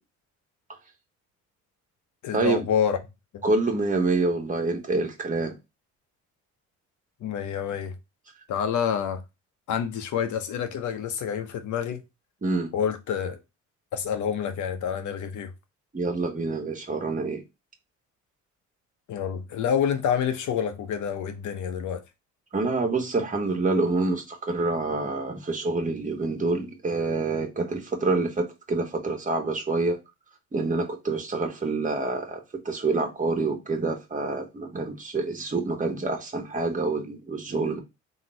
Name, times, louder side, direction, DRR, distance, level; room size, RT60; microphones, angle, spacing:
voice 1, 2.2-3.0 3.3-3.4 7.2-7.9 8.5-9.2 9.7-12.0 12.7-13.4 13.9-15.5 19.1-22.0, left 8 dB, 75° left, 0.9 m, -28 dB
voice 2, 3.4-5.6 12.4-12.7 15.9-17.4 22.5-30.0 30.5-37.8, right 3 dB, 25° right, 1.4 m, -27 dB
3.8 x 3.0 x 4.3 m
cardioid pair, 90°, 30 cm